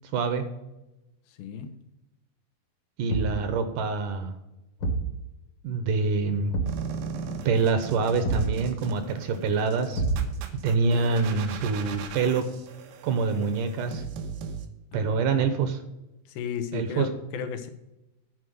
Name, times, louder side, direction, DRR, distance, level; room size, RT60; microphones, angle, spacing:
voice 1, 0.1-0.5 3.0-4.3 5.6-6.5 7.5-10.0 10.6-12.4 13.0-14.0 14.9-15.8 16.7-17.1, right 4 dB, 70° right, 2.2 m, -25 dB
voice 2, 1.3-1.7 14.9-15.3 16.3-17.7, left 8 dB, 85° left, 2.9 m, -34 dB
Thump thud, 3.1-3.5 4.8-5.1 6.5-6.9 8.2-8.6 9.9-10.5, right 3 dB, 55° left, 1.6 m, -27 dB
sound 1, 6.7-14.7, right 5 dB, 85° right, 2.8 m, -38 dB
9.7 x 4.6 x 7.8 m
omnidirectional pair, 4.2 m